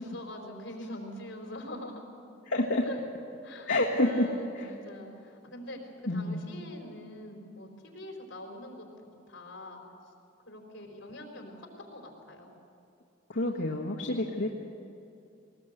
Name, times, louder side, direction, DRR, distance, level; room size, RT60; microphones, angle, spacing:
voice 1, 0.0-2.1 2.8-3.0 3.4-3.7 4.0-9.8 10.5-12.5, left 1 dB, 65° left, 2 dB, 4.2 m, -44 dB
voice 2, 2.5-2.8 3.7-4.3 4.6-4.7 6.1-6.4 13.3-14.5, left 1 dB, 80° left, -2 dB, 1.5 m, -28 dB
20.0 x 19.5 x 8.0 m, 2.7 s
head